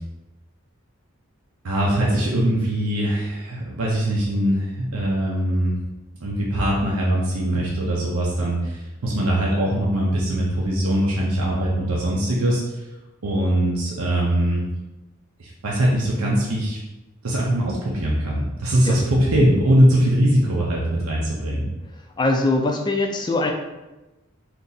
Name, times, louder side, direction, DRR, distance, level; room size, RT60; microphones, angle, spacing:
voice 1, 1.6-5.7 6.2-12.6 13.2-14.6 15.4-16.8 17.2-21.7, right 1 dB, 80° right, -4 dB, 0.6 m, -21 dB
voice 2, 22.2-23.5, left 2 dB, 20° left, 3 dB, 0.3 m, -21 dB
2.6 x 2.5 x 3.8 m, 1.1 s
head